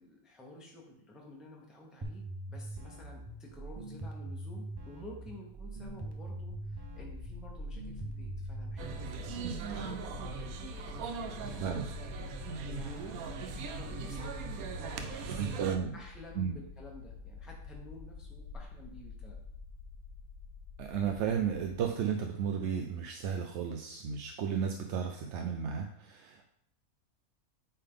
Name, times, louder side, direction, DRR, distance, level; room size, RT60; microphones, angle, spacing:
voice 1, 0.0-10.0 10.7-11.6 12.4-19.4, left 1 dB, ahead, -1 dB, 0.9 m, -52 dB
sound 1, 2.0-10.0, right 2 dB, 30° right, 0.4 m, -43 dB
sound 2, 5.8-21.8, left 4 dB, 85° left, 1.1 m, -47 dB
sound 3, 8.8-15.8, right 6 dB, 90° right, 1.1 m, -40 dB
voice 2, 15.4-16.0 16.4-16.6 20.8-26.5, right 7 dB, 65° right, 4 dB, 0.8 m, -33 dB
8.4 x 3.6 x 3.7 m, 0.72 s
omnidirectional pair, 1.5 m